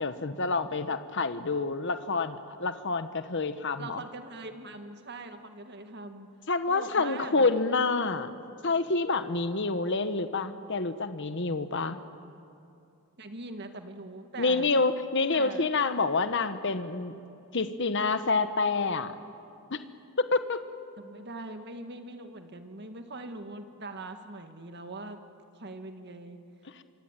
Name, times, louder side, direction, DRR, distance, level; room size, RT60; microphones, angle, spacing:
voice 1, 0.0-4.0 6.5-8.3 8.6-12.0 14.4-17.1 17.5-19.1 19.7-19.8 20.2-20.6, left 3 dB, 55° left, 10 dB, 1.2 m, -28 dB
voice 2, 3.8-6.3 6.7-7.5 13.2-14.7 15.3-15.7 21.0-25.2 25.5-26.4, right 2 dB, 50° right, 7 dB, 1.9 m, -42 dB
26.0 x 23.5 x 9.1 m, 2.6 s
head